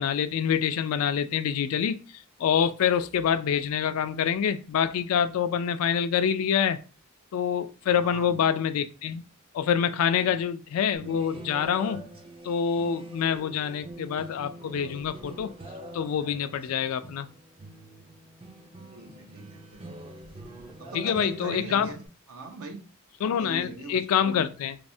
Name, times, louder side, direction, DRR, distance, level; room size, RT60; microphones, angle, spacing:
voice 1, 0.0-2.0 2.4-6.8 7.3-9.2 9.5-12.0 12.4-15.5 15.9-17.3 20.9-21.9 23.2-24.8, left 8 dB, 80° left, 0.3 m, -26 dB
voice 2, 7.8-8.5 10.2-10.3 18.9-19.8 20.8-22.0 22.3-22.8 23.4-24.2, right 3 dB, 80° right, 0.6 m, -40 dB
sound 1, 10.9-22.1, right 1 dB, 25° right, 0.4 m, -44 dB
3.1 x 2.0 x 2.6 m
head